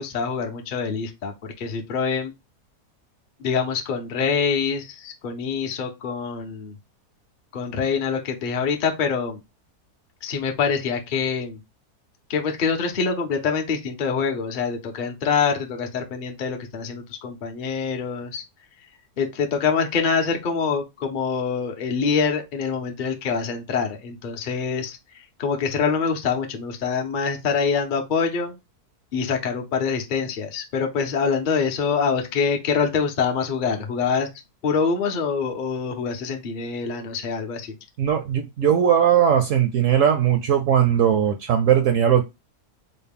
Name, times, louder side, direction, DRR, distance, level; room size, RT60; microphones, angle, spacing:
voice 1, 0.0-2.3 3.4-6.7 7.5-9.4 10.2-11.6 12.3-18.4 19.2-28.5 29.1-34.3 34.6-37.7, left 5 dB, 55° left, 4 dB, 0.5 m, -25 dB
voice 2, 38.0-42.2, right 9 dB, 70° right, 6 dB, 0.7 m, -19 dB
4.0 x 2.1 x 3.4 m, 0.22 s
omnidirectional pair, 1.7 m